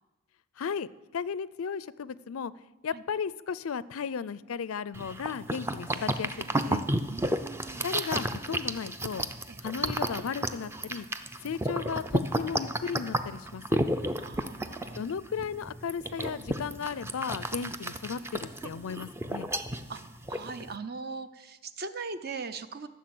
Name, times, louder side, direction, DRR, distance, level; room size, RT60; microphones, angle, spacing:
voice 1, 0.6-2.5 2.8-6.8 7.8-9.3 9.6-11.1 11.4-13.8 15.0-19.5, left 6 dB, 80° left, 18 dB, 0.5 m, -35 dB
sound 1, 4.9-20.7, right 1 dB, 10° right, 0.5 m, -32 dB
voice 2, 7.1-7.9 9.5-9.6 14.2-15.0 19.9-20.0 20.3-22.9, right 4 dB, 50° right, 11 dB, 0.7 m, -40 dB
14.0 x 7.2 x 7.8 m, 1.1 s
head